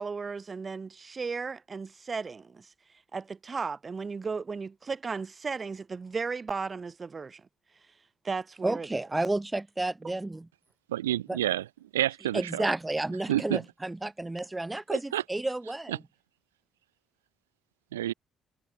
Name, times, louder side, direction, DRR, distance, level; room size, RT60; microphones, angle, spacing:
voice 1, 0.0-7.4 7.7-8.0 8.2-9.0, right 4 dB, 40° right, 1.3 m, -35 dB
voice 2, 8.6-10.5 11.3-11.4 12.3-16.0, right 2 dB, 20° right, 1.9 m, -31 dB
voice 3, 10.9-11.7 11.9-12.6 13.3-13.6 15.1-15.2 15.9-16.0 17.9-18.1, right 13 dB, 90° right, 1.6 m, -28 dB
hypercardioid pair, 45°, 0 cm